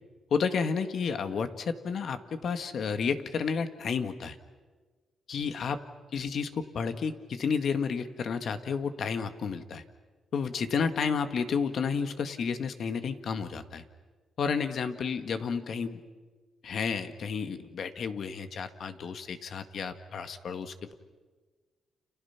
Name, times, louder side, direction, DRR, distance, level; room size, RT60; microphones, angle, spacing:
voice 1, 0.3-4.4 5.3-5.8 6.1-9.8 10.3-13.8 14.4-16.0 16.6-20.9, left 6 dB, 60° left, 9 dB, 1.9 m, -31 dB
30.0 x 29.5 x 6.0 m, 1.4 s
cardioid pair, 95°, 0 cm